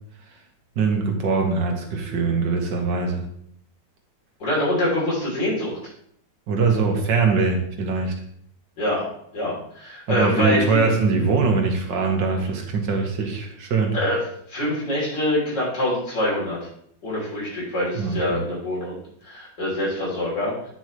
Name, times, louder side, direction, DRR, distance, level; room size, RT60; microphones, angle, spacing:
voice 1, 0.8-3.2 6.5-8.1 10.1-14.0 17.9-18.4, right 4 dB, 85° right, 2 dB, 2.0 m, -22 dB
voice 2, 4.4-5.8 8.8-10.8 13.9-14.2 14.5-16.6 17.0-19.0 19.2-20.7, left 1 dB, 75° left, -6 dB, 4.0 m, -25 dB
9.6 x 6.3 x 3.2 m, 0.67 s
omnidirectional pair, 1.9 m